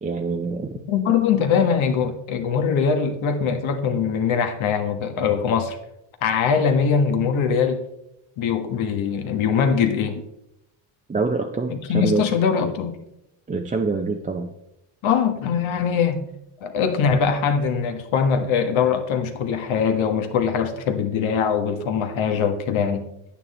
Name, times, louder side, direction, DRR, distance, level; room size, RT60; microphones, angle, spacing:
voice 1, 0.0-0.8 11.1-12.3 13.5-14.5, right 4 dB, 15° right, 0.5 m, -25 dB
voice 2, 0.9-5.8 6.2-7.8 8.4-10.2 11.7-13.0 15.0-16.2 16.6-23.1, left 6 dB, 75° left, 1.5 m, -22 dB
9.4 x 9.1 x 4.2 m
cardioid pair, 140°, 48 cm